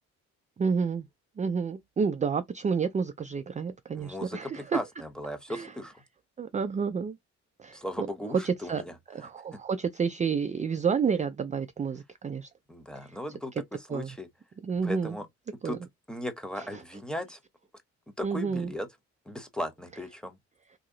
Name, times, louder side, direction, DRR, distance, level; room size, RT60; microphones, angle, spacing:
voice 1, 0.6-1.1 1.4-4.8 5.5-5.7 6.4-7.2 7.6-8.1 8.4-8.8 9.1-12.5 13.0-13.2 13.9-14.1 14.6-15.1 15.6-15.8 16.6-16.7 18.2-18.7, right 6 dB, 25° right, 0.4 m, -30 dB
voice 2, 3.9-6.0 7.7-8.9 12.7-14.3 14.8-15.3 15.6-15.8 16.1-17.4 18.2-18.9 19.3-20.4, equal, 5° left, 0.9 m, -37 dB
2.9 x 2.8 x 3.8 m
cardioid pair, 90°, 30 cm